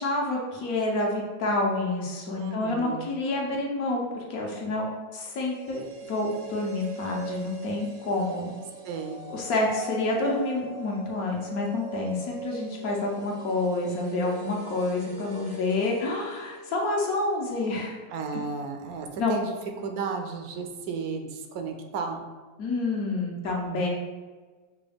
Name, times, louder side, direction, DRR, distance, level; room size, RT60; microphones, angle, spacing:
voice 1, 0.0-4.9 5.1-8.5 9.3-17.9 18.3-18.4 19.2-19.4 22.6-23.9, left 2 dB, 75° left, -2 dB, 1.3 m, -28 dB
voice 2, 2.4-3.1 8.8-9.2 18.1-19.5 19.8-21.3 21.5-22.2, right 5 dB, 80° right, 4 dB, 1.0 m, -33 dB
sound 1, 5.3-17.4 17.7-17.8, right 3 dB, 60° right, 0.8 m, -42 dB
5.8 x 2.3 x 3.4 m, 1.4 s
omnidirectional pair, 1.6 m